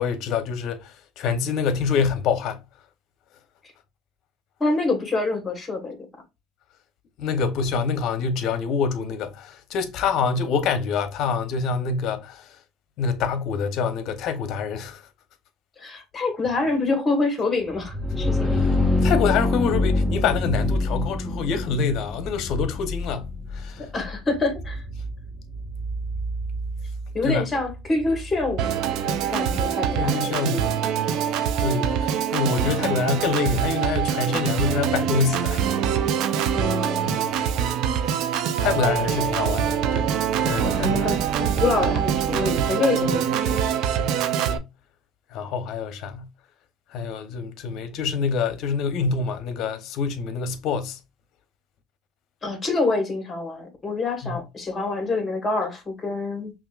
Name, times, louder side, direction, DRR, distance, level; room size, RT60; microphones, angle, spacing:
voice 1, 0.0-2.6 7.2-12.5 13.0-15.0 18.4-23.9 27.2-27.5 30.0-30.8 31.6-35.6 36.3-36.5 37.0-37.4 38.1-38.3 38.6-40.1 40.4-41.3 43.0-43.1 44.0-44.7 45.3-46.3 46.9-51.0 54.2-54.3, left 5 dB, 65° left, 0.7 m, -26 dB
voice 2, 4.6-5.9 15.8-18.6 23.8-24.8 27.1-28.7 29.0-30.3 36.5-37.2 40.8-43.6 52.4-56.5, left 3 dB, 25° left, 1.7 m, -26 dB
sound 1, 17.7-29.3, left 2 dB, 15° right, 1.4 m, -26 dB
Organ, 28.6-44.6, right 8 dB, 65° right, 0.5 m, -24 dB
5.7 x 2.5 x 2.4 m
supercardioid pair, 100°, 0 cm